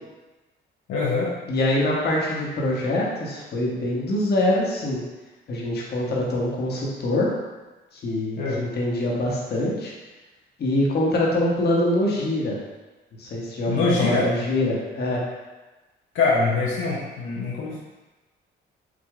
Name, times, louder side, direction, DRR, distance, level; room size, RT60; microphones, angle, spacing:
voice 1, 0.9-1.3 8.4-8.7 13.7-14.3 16.1-17.8, left 3 dB, 85° left, -5 dB, 0.9 m, -23 dB
voice 2, 1.5-5.0 5.5-7.3 7.9-9.9 10.6-12.6 13.2-15.2, left 1 dB, 55° left, -4 dB, 1.2 m, -24 dB
5.0 x 2.6 x 3.6 m, 1.2 s
cardioid pair, 90°, 20 cm